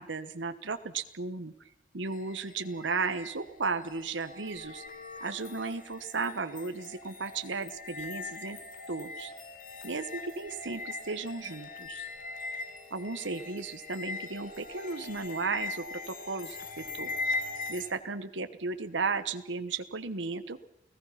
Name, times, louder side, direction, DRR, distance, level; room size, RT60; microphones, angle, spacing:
voice 1, 0.0-1.5 1.9-4.8 5.2-8.6 8.9-9.3 9.8-12.1 12.9-17.1 17.7-20.6, right 4 dB, 75° right, 10 dB, 1.2 m, -35 dB
sound 1, 2.1-17.9, left 3 dB, 45° left, 2.1 m, -41 dB
29.5 x 18.0 x 5.8 m, 0.76 s
head